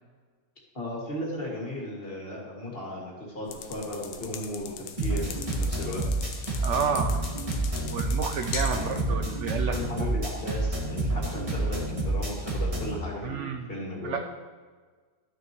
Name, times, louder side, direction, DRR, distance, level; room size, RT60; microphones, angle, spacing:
voice 1, 0.7-6.0 8.6-9.2 9.7-14.2, left 1 dB, 35° left, -3 dB, 2.2 m, -36 dB
sound 1, 3.5-9.0, left 8 dB, 80° left, 1.2 m, -41 dB
sound 2, 5.0-13.0, right 2 dB, 20° right, 1.5 m, -29 dB
voice 2, 6.6-7.2 7.8-9.7 13.2-13.7 14.0-14.2, right 7 dB, 70° right, 5 dB, 0.7 m, -30 dB
12.5 x 6.4 x 3.0 m, 1.5 s
omnidirectional pair, 1.7 m